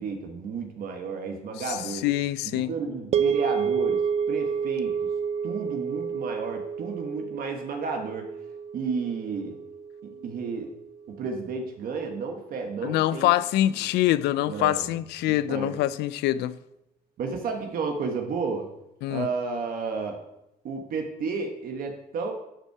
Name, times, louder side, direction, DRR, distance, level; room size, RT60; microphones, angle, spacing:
voice 1, 0.0-2.0 2.4-4.0 4.3-4.9 5.4-8.3 8.7-9.5 10.0-10.7 11.2-13.3 14.5-14.9 15.2-15.8 17.2-18.7 19.1-20.2 20.6-22.3, right 4 dB, 60° right, 1.2 m, -32 dB
voice 2, 2.0-2.7 12.8-16.6 19.0-19.3, left 14 dB, 85° left, 0.5 m, -25 dB
sound 1, 3.1-11.4, right 7 dB, 40° right, 0.4 m, -30 dB
12.0 x 5.5 x 4.7 m
cardioid pair, 110°, 17 cm